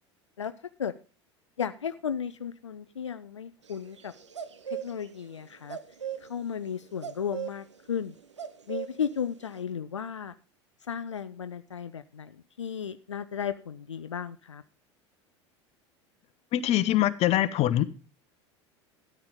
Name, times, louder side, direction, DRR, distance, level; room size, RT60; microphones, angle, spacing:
voice 1, 1.6-4.1 4.7-5.8 6.2-8.1 8.7-10.3 10.9-14.6, left 7 dB, 85° left, 0.5 m, -34 dB
sound 1, 3.7-5.4 5.6-9.6, right 9 dB, 80° right, 1.1 m, -38 dB
voice 2, 16.5-17.8, left 13 dB, 45° left, 1.1 m, -23 dB
13.0 x 9.7 x 5.2 m
figure-of-eight pair, 75°, 15 cm